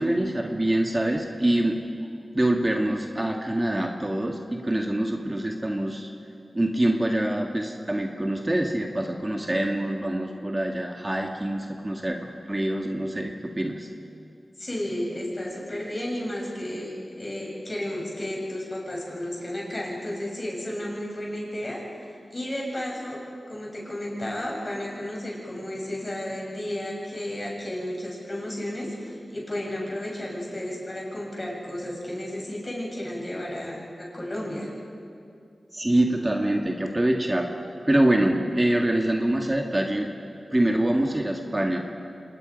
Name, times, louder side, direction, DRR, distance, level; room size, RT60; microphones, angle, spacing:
voice 1, 0.0-1.8 2.3-6.1 6.5-13.9 35.7-37.5 37.9-40.1 40.5-41.8, right 1 dB, 25° right, 2 dB, 1.8 m, -25 dB
voice 2, 14.6-21.8 22.3-23.2 23.5-34.7, left 1 dB, 35° left, -2 dB, 7.0 m, -33 dB
26.0 x 20.0 x 5.3 m, 2.5 s
cardioid pair, 45°, 0 cm